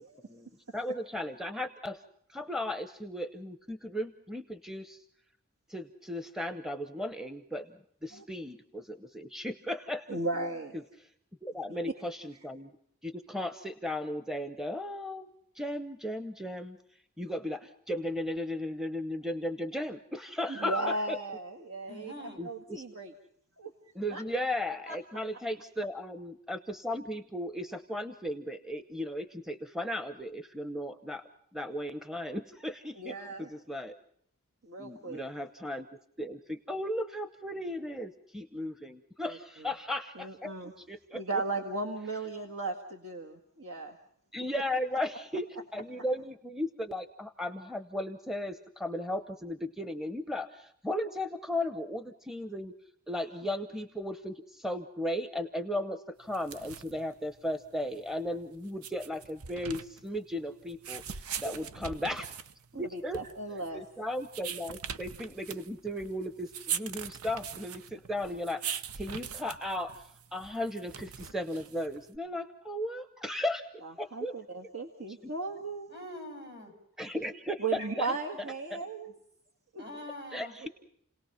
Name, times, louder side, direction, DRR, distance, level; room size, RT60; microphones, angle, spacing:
voice 1, 0.3-2.0 2.3-5.0 5.7-7.7 8.0-10.1 10.7-10.8 11.4-12.7 13.0-16.8 17.2-21.2 22.4-22.8 23.9-31.2 31.5-33.9 34.8-35.9 36.2-40.5 40.9-41.4 44.3-45.5 45.7-52.7 53.1-62.3 62.7-63.2 63.7-73.7 74.0-74.3 75.2-75.3 77.0-78.1 78.7-78.8 80.3-80.7, left 1 dB, ahead, 8 dB, 0.8 m, -36 dB
voice 2, 10.1-10.8 20.5-22.1 22.4-23.1 23.6-23.7 24.1-24.2 24.9-25.0 33.0-33.5 34.6-35.2 39.3-39.7 40.2-40.7 41.1-44.0 45.5-45.6 61.4-61.5 62.7-63.8 73.8-75.9 77.6-79.2 79.7-79.9 80.6-80.7, right 3 dB, 70° right, 3 dB, 1.8 m, -36 dB
voice 3, 21.9-22.4 75.9-76.7 79.8-80.6, left 1 dB, 55° right, 5 dB, 7.3 m, -44 dB
sound 1, 56.3-72.2, right 8 dB, 85° right, 0.8 m, -42 dB
30.0 x 18.5 x 5.8 m, 0.68 s
head